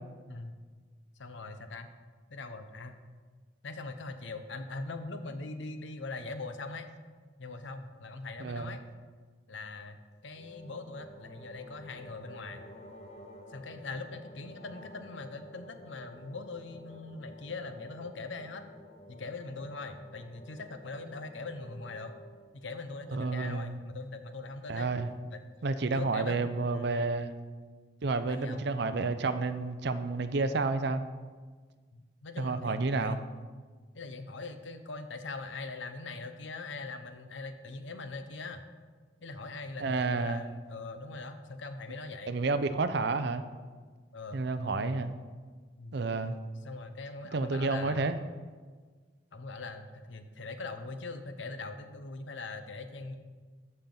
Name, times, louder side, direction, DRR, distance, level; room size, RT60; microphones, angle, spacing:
voice 1, 1.2-1.9 2.3-3.0 3.6-6.9 7.4-8.8 9.5-12.6 13.5-18.6 19.1-22.1 22.5-24.9 25.3-25.4 25.9-26.4 26.7-26.9 28.2-28.6 31.9-33.2 33.9-38.6 39.2-42.3 44.1-44.4 45.8-46.0 46.6-48.1 49.3-53.2, left 3 dB, 75° left, 8 dB, 0.8 m, -41 dB
voice 2, 8.4-8.8 23.1-23.8 24.7-25.1 25.6-27.3 28.0-31.0 32.4-33.2 39.8-40.4 42.3-43.4 44.3-45.1 45.9-46.4 47.3-48.2, right 3 dB, 60° right, 10 dB, 0.5 m, -30 dB
sound 1, 10.4-22.6, left 1 dB, 35° left, 0.7 m, -52 dB
14.0 x 5.6 x 3.9 m, 1.5 s
head